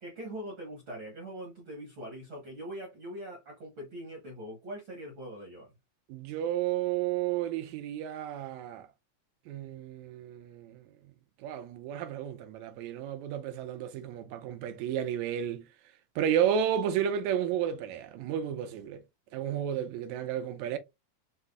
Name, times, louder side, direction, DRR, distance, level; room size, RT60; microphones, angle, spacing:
voice 1, 0.0-5.7, equal, 60° right, 1.3 m, -42 dB
voice 2, 6.1-8.9 9.5-10.9 11.4-15.7 16.2-19.0 19.3-20.8, right 9 dB, 80° right, 1.7 m, -32 dB
5.6 x 3.0 x 2.3 m
omnidirectional pair, 3.7 m